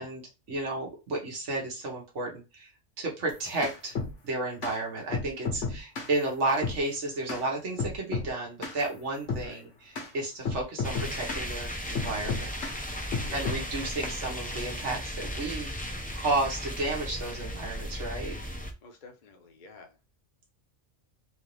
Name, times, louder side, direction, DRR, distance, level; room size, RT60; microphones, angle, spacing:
voice 1, 0.0-2.7 3.0-4.0 4.2-12.5 13.3-15.7 16.1-18.4, right 2 dB, 70° right, 1.7 m, -32 dB
sound 1, 3.3-4.1 4.6-4.8 5.1-6.1 6.6-6.8 7.3-7.4 7.8-8.3 8.6-8.8 9.3-9.5 10.0-10.1 10.5-11.5 12.0-12.8 13.1-13.6, left 4 dB, 75° left, 1.5 m, -32 dB
sound 2, 10.8-18.7, equal, 10° left, 0.4 m, -36 dB
voice 2, 13.2-13.7 18.8-20.0, left 3 dB, 45° left, 0.8 m, -49 dB
4.0 x 2.7 x 3.3 m
omnidirectional pair, 1.3 m